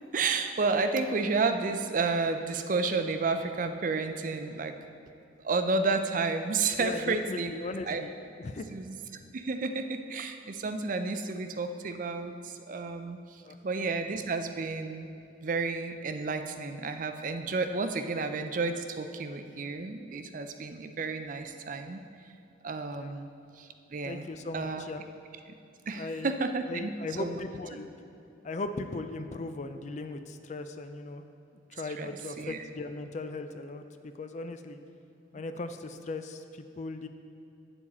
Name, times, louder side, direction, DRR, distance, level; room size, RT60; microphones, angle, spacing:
voice 1, 0.1-4.7 5.4-7.5 7.8-8.0 8.7-9.0 9.3-15.1 15.4-22.0 22.6-24.3 24.5-24.8 25.9-26.9 27.2-27.4 31.9-32.1 32.4-32.6, right 4 dB, 45° right, 8 dB, 0.4 m, -31 dB
voice 2, 6.8-8.1 8.4-8.7 13.4-13.6 22.9-23.1 24.0-25.0 26.0-26.3 26.7-27.9 28.4-31.2 31.7-34.8 35.3-37.1, left 2 dB, 40° left, 9 dB, 0.4 m, -38 dB
8.7 x 7.0 x 4.2 m, 2.7 s
head